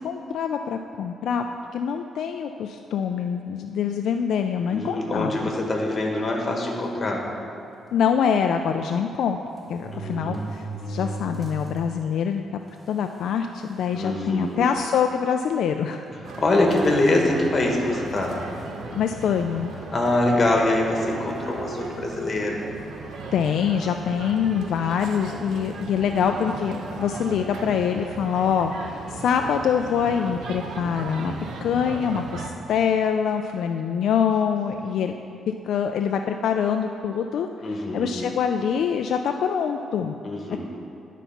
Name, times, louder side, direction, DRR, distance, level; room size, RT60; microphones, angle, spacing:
voice 1, 0.0-1.5 1.7-5.5 7.9-9.4 9.7-12.4 12.9-16.1 18.9-19.7 23.3-31.3 31.6-35.1 35.5-37.5 37.9-40.2 40.5-40.6, left 7 dB, 70° left, 5 dB, 0.3 m, -25 dB
voice 2, 4.7-7.2 9.9-10.5 13.9-14.6 16.4-18.3 19.9-22.6 26.1-26.2 37.6-38.1 40.2-40.6, left 2 dB, 30° left, 0 dB, 1.3 m, -24 dB
sound 1, 5.9-6.2 6.9-7.0 7.3-7.4 8.8-8.9 9.5-11.8 12.2-12.3 13.2-13.3 13.6-14.0 14.6-14.8 16.1-16.9 17.8-18.1, right 3 dB, 5° right, 1.1 m, -36 dB
sound 2, 16.2-32.5, right 3 dB, 75° right, 0.7 m, -37 dB
11.0 x 4.1 x 5.7 m, 2.6 s
cardioid pair, 135°, 0 cm